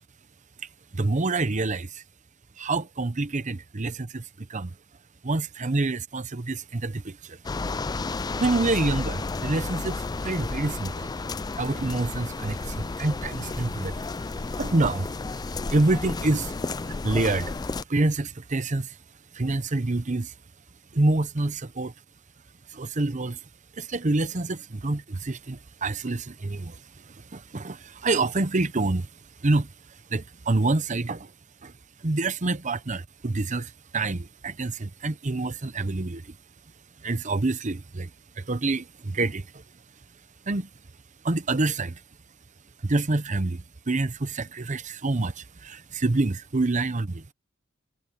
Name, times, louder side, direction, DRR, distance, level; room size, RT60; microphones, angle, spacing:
voice 1, 0.9-2.0 2.6-4.7 5.2-7.4 8.3-11.1 11.5-14.1 14.3-15.1 15.5-16.5 16.9-17.6 17.9-19.0 19.3-20.3 20.9-21.9 22.7-23.4 23.8-29.1 29.4-29.7 30.1-31.3 31.6-31.7 32.0-36.4 37.0-38.1 38.4-39.6 40.5-40.7 41.2-42.0 42.8-47.3, right 2 dB, 40° right, 0.9 m, -27 dB
sound 1, 7.4-17.8, left 3 dB, 20° left, 0.4 m, -32 dB
head